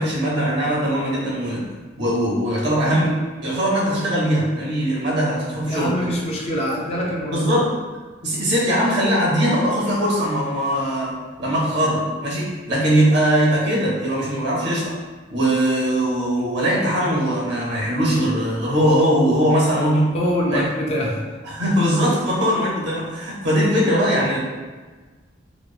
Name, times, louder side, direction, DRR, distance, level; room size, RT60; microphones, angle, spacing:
voice 1, 0.0-1.7 2.0-6.0 7.3-7.7 8.2-15.0 15.3-20.1 20.5-20.7 21.4-24.4, equal, 60° right, -4 dB, 0.8 m, -20 dB
voice 2, 5.7-7.5 20.1-21.2, equal, 35° left, -2 dB, 0.4 m, -24 dB
3.0 x 2.0 x 2.3 m, 1.4 s
head